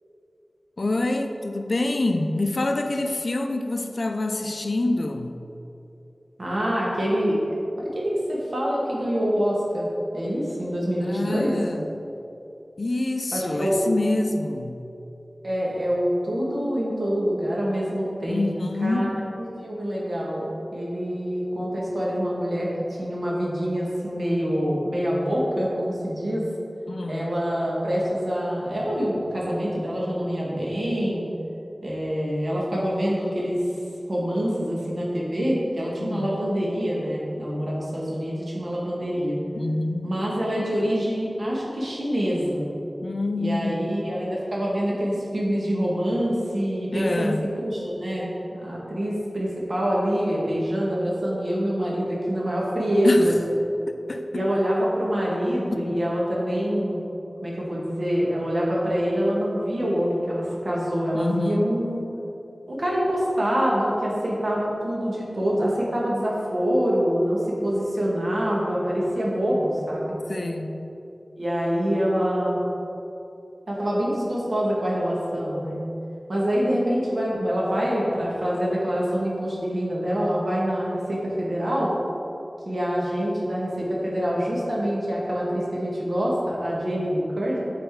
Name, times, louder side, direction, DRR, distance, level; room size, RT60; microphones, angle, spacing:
voice 1, 0.8-5.4 11.0-12.2 12.8-14.8 18.3-19.3 26.9-27.4 36.0-36.4 39.5-40.1 43.0-44.0 46.9-47.4 53.0-53.4 54.1-54.4 55.7-56.0 61.1-61.8 70.3-70.8, left 2 dB, 60° left, 6 dB, 0.4 m, -27 dB
voice 2, 6.4-7.4 7.8-9.9 10.1-11.5 13.3-13.8 15.4-18.5 18.8-19.1 19.6-22.7 23.0-26.5 27.1-31.2 31.8-33.6 34.1-39.4 40.0-42.6 43.4-53.4 54.3-57.0 57.4-62.0 62.7-70.2 71.4-72.6 73.7-75.8 76.3-81.9 82.6-87.6, equal, 65° right, -5 dB, 1.5 m, -25 dB
7.8 x 4.1 x 3.6 m, 2.8 s
wide cardioid pair, 60°, 0 cm